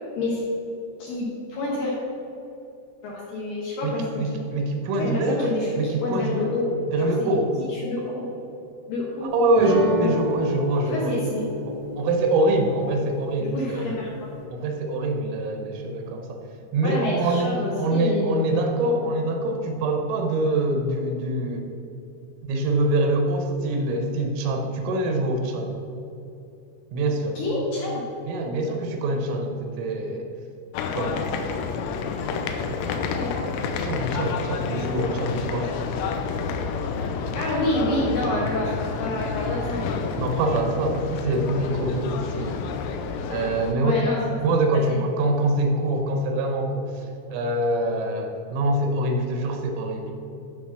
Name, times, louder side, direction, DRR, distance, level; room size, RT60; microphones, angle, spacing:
voice 1, 1.0-1.9 3.0-4.4 5.0-6.7 7.0-7.3 7.7-8.3 8.9-9.3 10.0-10.4 10.9-11.4 13.4-14.3 16.8-18.3 27.4-28.0 33.1-33.5 37.3-39.9 43.7-44.4 44.9-45.0, left 2 dB, 65° left, -5 dB, 2.3 m, -28 dB
voice 2, 3.8-5.5 5.8-6.5 6.9-7.5 9.3-11.2 11.7-13.9 14.5-16.4 16.7-21.7 22.4-25.8 26.9-27.4 28.3-30.3 30.9-31.4 33.8-35.8 40.2-42.6 43.3-43.9 44.4-47.1 47.3-50.1, right 2 dB, 85° right, 3 dB, 3.7 m, -24 dB
sound 1, 9.6-14.4, equal, 65° right, 1.7 m, -30 dB
sound 2, 30.7-43.7, left 5 dB, 85° left, 2.5 m, -29 dB
12.0 x 4.1 x 6.1 m, 2.8 s
omnidirectional pair, 5.7 m